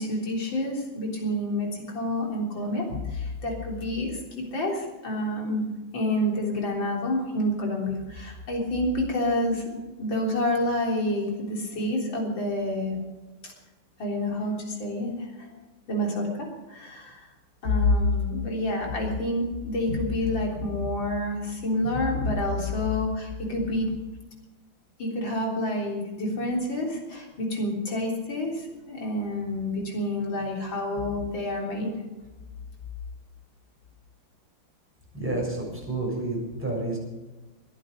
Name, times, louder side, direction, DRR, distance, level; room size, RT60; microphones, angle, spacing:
voice 1, 0.0-5.6 5.9-9.6 10.0-13.0 13.4-13.5 14.0-15.5 15.9-17.2 17.6-23.9 25.0-31.9, left 1 dB, 60° left, -1 dB, 4.3 m, -28 dB
voice 2, 35.1-37.0, right 2 dB, 5° right, -3 dB, 6.8 m, -30 dB
22.0 x 11.0 x 5.3 m, 1.1 s
omnidirectional pair, 2.3 m